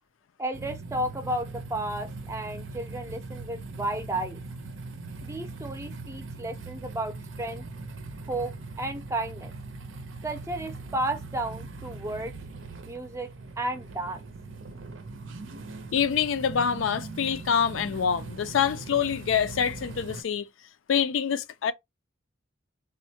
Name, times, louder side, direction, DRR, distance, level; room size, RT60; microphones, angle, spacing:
voice 1, 0.4-4.4 5.2-7.6 8.3-9.5 10.2-12.3 12.9-14.2, right 1 dB, 15° right, 0.5 m, -33 dB
sound 1, 0.5-20.2, right 3 dB, 80° right, 0.6 m, -40 dB
voice 2, 15.9-20.5 20.9-21.7, left 7 dB, 80° left, 0.4 m, -26 dB
3.6 x 2.1 x 2.7 m
head